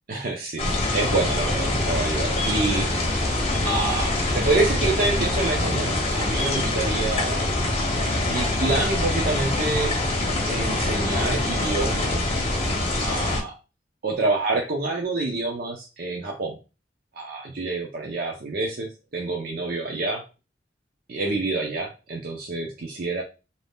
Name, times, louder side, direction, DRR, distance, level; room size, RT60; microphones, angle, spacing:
voice 1, 0.1-2.9 3.6-7.4 8.2-9.9 10.5-12.3 12.9-13.5 14.0-16.6 17.2-20.2 21.1-23.2, right 3 dB, 55° right, 0 dB, 0.6 m, -27 dB
sound 1, 0.6-13.4, left 2 dB, 35° left, 0.8 m, -24 dB
2.6 x 2.3 x 3.4 m, 0.30 s
head